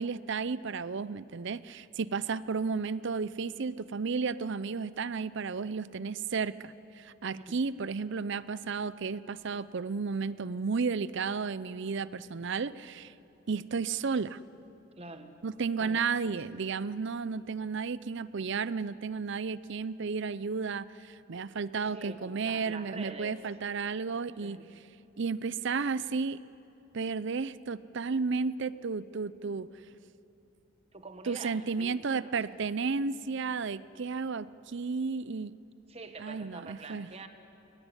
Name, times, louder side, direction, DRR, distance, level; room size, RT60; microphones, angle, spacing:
voice 1, 0.0-13.1 13.5-14.4 15.4-24.6 25.2-26.4 26.9-29.7 31.3-35.5 36.2-37.1, right 5 dB, 60° right, 17 dB, 0.6 m, -33 dB
voice 2, 15.0-15.4 15.8-16.0 21.9-23.4 24.4-24.7 30.9-32.6 35.9-37.3, right 3 dB, 30° right, 7 dB, 1.5 m, -45 dB
21.5 x 18.5 x 9.9 m, 2.8 s
head